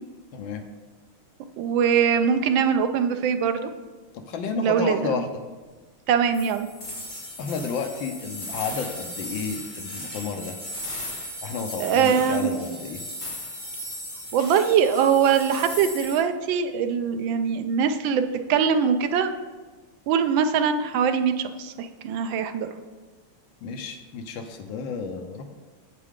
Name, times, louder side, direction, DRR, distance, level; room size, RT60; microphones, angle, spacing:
voice 1, 0.3-0.6 4.1-5.3 7.4-10.6 11.4-13.1 23.6-25.5, left 5 dB, 70° left, 6 dB, 1.4 m, -31 dB
voice 2, 1.6-3.7 4.6-5.2 6.1-6.7 11.8-12.5 14.3-18.2 18.5-19.3 20.1-22.7, right 7 dB, 75° right, 8 dB, 1.3 m, -22 dB
sound 1, 6.3-16.2, left 1 dB, 25° left, 1.7 m, -37 dB
8.4 x 7.5 x 3.7 m, 1.3 s
omnidirectional pair, 2.4 m